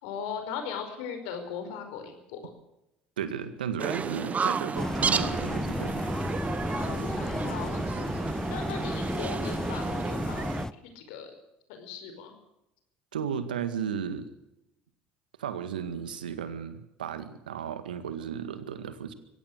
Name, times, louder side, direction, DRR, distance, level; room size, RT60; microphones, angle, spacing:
voice 1, 0.0-2.4 6.7-11.3 11.7-12.3, left 7 dB, 70° left, 7 dB, 5.2 m, -39 dB
voice 2, 3.2-6.0 13.1-14.3 15.4-19.1, right 8 dB, 80° right, 11 dB, 1.9 m, -34 dB
sound 1, 3.8-10.7, right 5 dB, 30° right, 1.3 m, -32 dB
sound 2, 4.7-10.7, left 2 dB, 10° left, 0.9 m, -33 dB
24.0 x 16.5 x 6.6 m, 0.86 s
hypercardioid pair, 60°, 5 cm